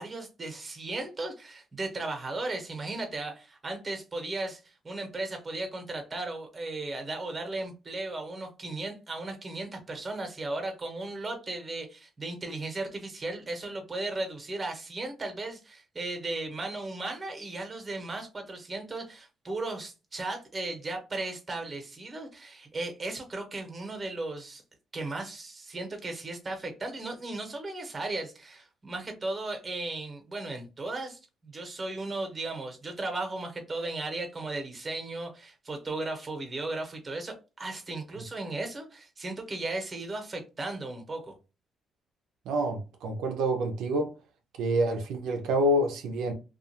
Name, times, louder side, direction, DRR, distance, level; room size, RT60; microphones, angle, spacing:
voice 1, 0.0-24.6 24.9-41.3, right 2 dB, 30° right, 0.9 m, -36 dB
voice 2, 42.5-44.1 44.6-46.3, right 1 dB, 85° right, 0.5 m, -27 dB
2.4 x 2.3 x 2.8 m
cardioid pair, 90°, 0 cm